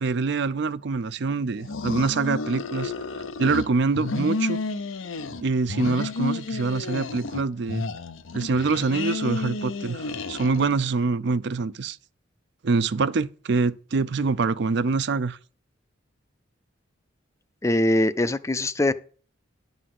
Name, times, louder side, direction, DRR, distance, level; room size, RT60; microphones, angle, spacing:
voice 1, 0.0-2.9 3.4-4.6 5.4-7.8 8.3-12.0 12.6-15.4, right 4 dB, 60° right, 0.5 m, -25 dB
sound 1, 1.6-3.7 3.9-5.4 5.7-7.4 7.7-10.9, left 3 dB, 85° left, 0.7 m, -31 dB
voice 2, 17.6-18.9, left 1 dB, 15° left, 0.4 m, -22 dB
11.0 x 4.0 x 7.7 m
head